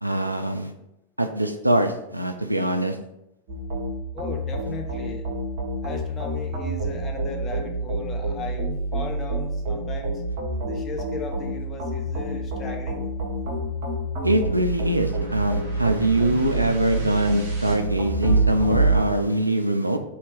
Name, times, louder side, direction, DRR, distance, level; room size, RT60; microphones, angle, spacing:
voice 1, 0.0-0.7 1.2-3.0 14.2-20.0, right 1 dB, 85° right, 6 dB, 0.3 m, -23 dB
sound 1, 3.5-19.0, right 2 dB, 50° right, 1.1 m, -27 dB
voice 2, 4.1-5.3 5.8-10.2 10.6-13.1, left 3 dB, 25° left, 3 dB, 0.7 m, -37 dB
3.1 x 2.9 x 4.5 m, 0.82 s
figure-of-eight pair, 90°, 0 cm